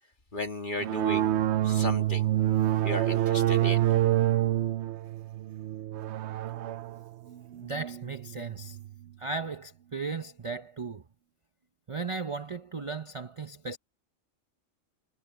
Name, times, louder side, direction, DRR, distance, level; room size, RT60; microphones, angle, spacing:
voice 1, 0.3-1.3 1.6-2.3 2.8-3.9, left 2 dB, 40° left, 2.6 m, -35 dB
sound 1, 0.8-8.9, right 13 dB, 65° right, 0.8 m, -27 dB
voice 2, 7.6-8.8 9.2-11.0 11.9-13.8, right 4 dB, 35° right, 0.6 m, -36 dB
omnidirectional pair, 1.4 m